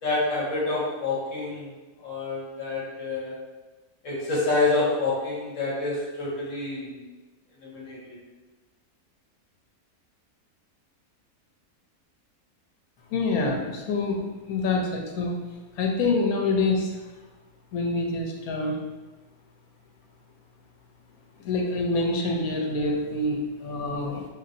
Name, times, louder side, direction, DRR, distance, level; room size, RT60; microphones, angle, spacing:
voice 1, 0.0-1.7 2.0-3.4 4.0-7.0 7.6-8.0, left 3 dB, 65° left, -6 dB, 1.2 m, -27 dB
voice 2, 13.1-15.3 15.8-17.0 17.7-18.8 21.4-24.3, left 3 dB, 80° left, 0 dB, 1.1 m, -26 dB
3.0 x 2.6 x 2.5 m, 1.2 s
omnidirectional pair, 1.5 m